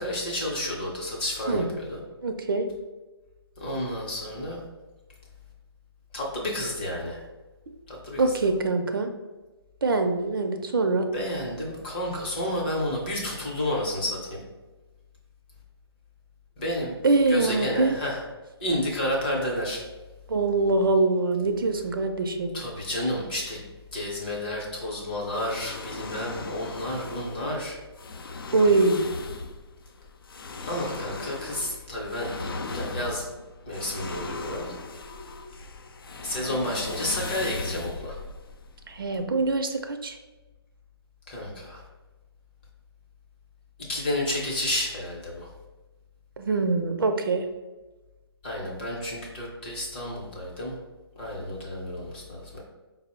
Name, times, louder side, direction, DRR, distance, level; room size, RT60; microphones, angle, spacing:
voice 1, 0.0-2.0 3.6-4.6 6.1-7.2 7.9-8.3 11.1-14.4 16.6-16.9 17.3-18.2 18.6-19.9 22.5-23.6 23.9-27.8 30.6-33.3 33.7-34.7 36.1-38.2 41.3-41.8 43.9-45.5 48.4-50.8 51.2-52.6, left 1 dB, 20° left, -3 dB, 0.7 m, -31 dB
voice 2, 2.2-2.7 8.2-9.1 9.8-11.1 17.0-17.9 20.3-22.6 28.5-29.1 38.9-40.2 46.4-47.4, right 3 dB, 55° right, 5 dB, 0.5 m, -23 dB
sound 1, 25.3-39.2, left 3 dB, 60° left, 0.4 m, -38 dB
4.9 x 2.0 x 4.3 m, 1.2 s
hypercardioid pair, 170°, 14 cm